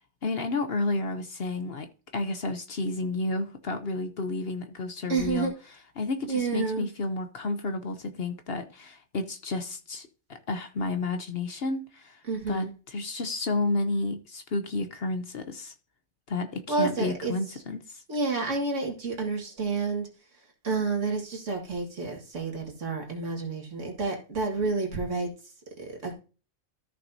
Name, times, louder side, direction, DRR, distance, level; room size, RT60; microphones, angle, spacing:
voice 1, 0.2-1.9 2.1-5.5 6.0-12.2 12.5-15.7 16.3-18.0, left 2 dB, 50° left, 0.9 m, -31 dB
voice 2, 5.1-5.5 6.3-6.9 12.3-12.7 16.7-17.3 18.1-20.1 20.6-25.3 25.8-26.1, right 4 dB, 65° right, 2.2 m, -29 dB
13.5 x 6.0 x 2.7 m
omnidirectional pair, 1.4 m